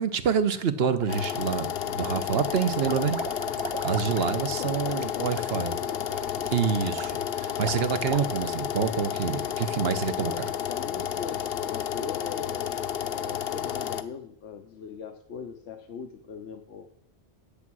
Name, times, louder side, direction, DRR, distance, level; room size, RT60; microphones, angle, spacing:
voice 1, 0.0-3.2 3.8-5.7 6.5-10.5, right 7 dB, 65° right, 1.0 m, -27 dB
sound 1, 0.8-1.6 2.0-8.7, right 4 dB, 35° right, 0.5 m, -39 dB
sound 2, 1.1-14.0, left 10 dB, 60° left, 0.9 m, -31 dB
voice 2, 4.6-6.2 10.2-16.9, left 6 dB, 85° left, 1.1 m, -40 dB
10.5 x 8.3 x 6.1 m
omnidirectional pair, 1.1 m